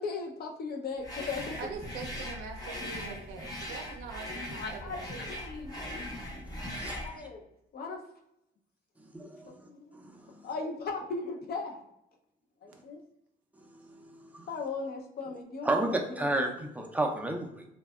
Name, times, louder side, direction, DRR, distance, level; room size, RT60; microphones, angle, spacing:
voice 1, 0.0-1.6 2.2-2.3 4.5-6.0 7.0-7.4 7.7-8.0 9.2-10.0 10.4-11.8 12.6-13.0 14.5-16.3, left 4 dB, 50° left, 2 dB, 0.5 m, -38 dB
sound 1, 1.0-7.1, left 1 dB, 20° left, 0.7 m, -40 dB
voice 2, 1.6-5.2, right 5 dB, 90° right, 4 dB, 0.5 m, -43 dB
voice 3, 5.8-7.3 9.1-10.5 13.8-14.5 15.6-15.9 16.2-17.7, right 2 dB, 5° right, 2 dB, 0.4 m, -34 dB
2.6 x 2.2 x 2.2 m, 0.81 s
cardioid pair, 90°, 20 cm